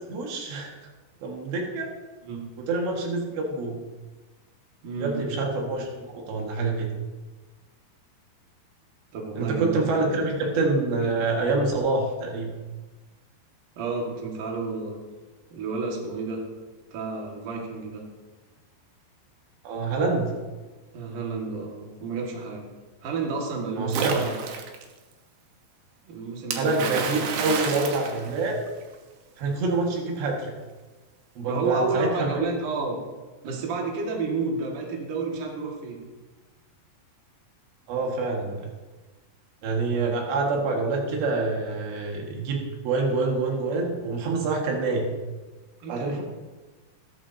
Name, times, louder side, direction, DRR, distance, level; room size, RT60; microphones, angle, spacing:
voice 1, 0.1-0.7 1.2-1.9 2.6-3.8 5.0-6.9 9.4-12.5 19.6-20.3 23.8-24.2 26.6-28.6 29.4-30.5 31.4-32.4 37.9-38.7 39.6-45.1 45.9-46.2, right 3 dB, 90° right, 0 dB, 4.0 m, -26 dB
voice 2, 4.8-5.2 9.1-10.2 13.8-15.0 15.5-16.4 16.9-18.0 20.9-22.7 23.0-24.4 26.1-27.5 31.5-33.0 33.4-36.1 45.8-46.2, right 4 dB, 55° right, -1 dB, 3.1 m, -31 dB
Splash splatter, 23.9-24.8 26.5-28.9, right 5 dB, 70° right, 3.0 m, -30 dB
15.5 x 13.5 x 2.8 m, 1.2 s
omnidirectional pair, 4.8 m